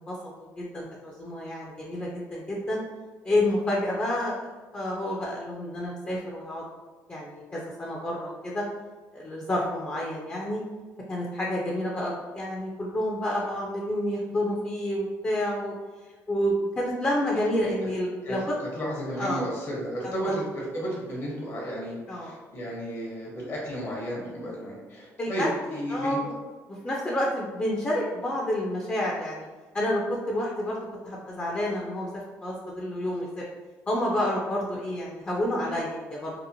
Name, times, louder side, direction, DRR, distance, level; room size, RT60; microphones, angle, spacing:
voice 1, 0.1-2.8 3.2-4.5 4.7-6.6 7.1-8.6 9.1-10.6 11.1-15.7 16.0-18.4 19.2-19.4 20.2-20.3 22.1-22.3 25.2-26.3 26.7-29.5 29.7-30.8 31.0-33.4 33.9-36.3, left 1 dB, 25° left, -3 dB, 0.4 m, -29 dB
voice 2, 18.8-26.2, equal, 55° left, -4 dB, 0.9 m, -33 dB
2.8 x 2.1 x 2.6 m, 1.3 s
cardioid pair, 85°, 6 cm